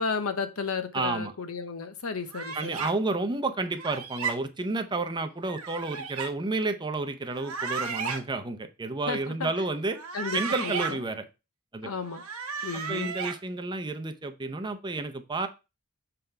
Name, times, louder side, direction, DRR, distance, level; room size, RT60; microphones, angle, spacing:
voice 1, 0.0-2.8 9.1-9.5 10.1-10.7 11.8-12.2 12.6-13.1, left 5 dB, 70° left, 10 dB, 0.9 m, -33 dB
voice 2, 0.9-1.3 2.5-10.0 10.3-11.3 11.7-11.9 12.9-15.5, right 3 dB, 20° right, 7 dB, 0.6 m, -31 dB
sound 1, 2.3-2.9 3.8-4.3 5.5-6.3 7.3-8.2 9.9-10.9 12.1-13.4, right 5 dB, 85° right, 1.2 m, -34 dB
6.8 x 3.8 x 4.5 m, 0.27 s
head